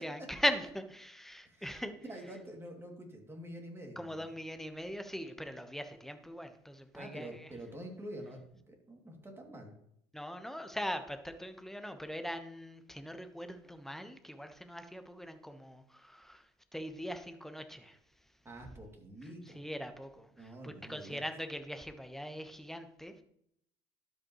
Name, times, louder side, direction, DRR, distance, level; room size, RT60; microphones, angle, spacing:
voice 1, 0.0-1.9 4.0-7.5 10.1-18.0 19.2-23.1, equal, 5° left, 8 dB, 1.1 m, -40 dB
voice 2, 1.4-4.3 6.9-8.4 8.7-9.7 18.4-19.6 20.4-21.2, right 1 dB, 20° right, 1 dB, 2.6 m, -47 dB
12.0 x 5.5 x 3.1 m, 0.72 s
hypercardioid pair, 75°, 13 cm